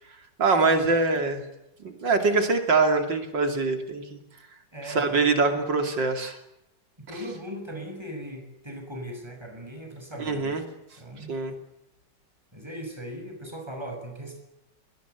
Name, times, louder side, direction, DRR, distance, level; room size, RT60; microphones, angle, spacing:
voice 1, 0.4-1.4 1.8-4.2 4.9-6.4 10.2-10.6 11.3-11.5, right 3 dB, 90° right, 6 dB, 3.5 m, -24 dB
voice 2, 4.7-5.4 7.1-10.6 11.0-11.3 12.5-14.4, equal, 15° right, 4 dB, 7.0 m, -38 dB
23.5 x 20.0 x 8.3 m, 0.87 s
omnidirectional pair, 1.9 m